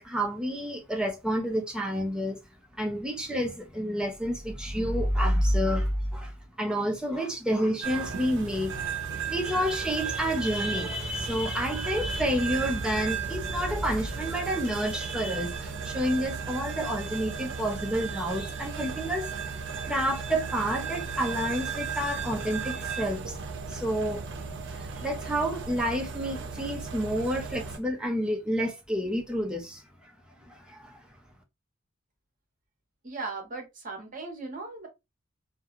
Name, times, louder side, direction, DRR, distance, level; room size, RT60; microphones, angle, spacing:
voice 1, 0.0-2.4 2.8-6.3 6.6-8.7 9.2-19.4 19.8-23.4 23.7-24.2 24.7-29.8 30.5-31.0, equal, 5° right, 0.5 m, -29 dB
sound 1, 7.8-27.8, right 5 dB, 65° right, 0.6 m, -35 dB
voice 2, 33.0-34.9, right 3 dB, 40° right, 0.8 m, -37 dB
2.3 x 2.2 x 2.8 m
head